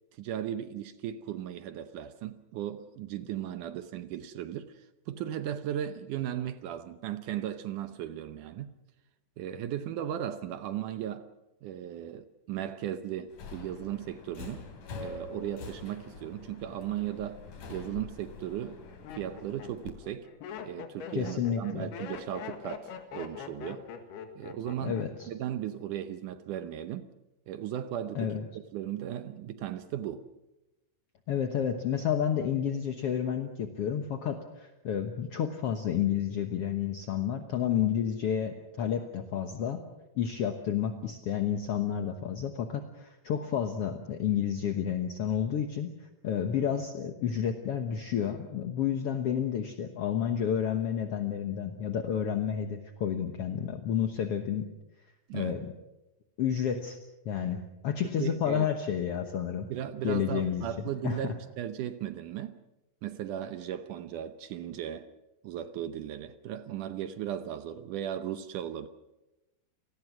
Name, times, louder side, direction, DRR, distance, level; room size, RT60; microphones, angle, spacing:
voice 1, 0.2-8.7 9.4-11.3 11.6-14.7 15.0-17.4 17.7-18.8 19.1-20.3 20.6-23.9 24.4-27.1 27.5-28.4 28.7-30.3 55.3-55.6 58.2-58.7 59.7-62.6 63.0-65.1 65.4-68.9, right 11 dB, 75° right, 2.0 m, -36 dB
Subway metro underground, 13.3-19.9, left 4 dB, 55° left, 4.2 m, -45 dB
Laughter, 18.0-18.1 18.7-25.3 25.6-26.1, left 7 dB, 85° left, 3.9 m, -43 dB
voice 2, 21.1-21.9 24.8-25.3 28.1-28.4 31.3-39.8 40.2-45.9 46.2-54.7 55.3-55.6 56.4-57.0 57.2-59.7 60.0-60.7 61.0-61.3, left 8 dB, 70° left, 1.4 m, -30 dB
29.5 x 19.0 x 6.2 m
omnidirectional pair, 4.4 m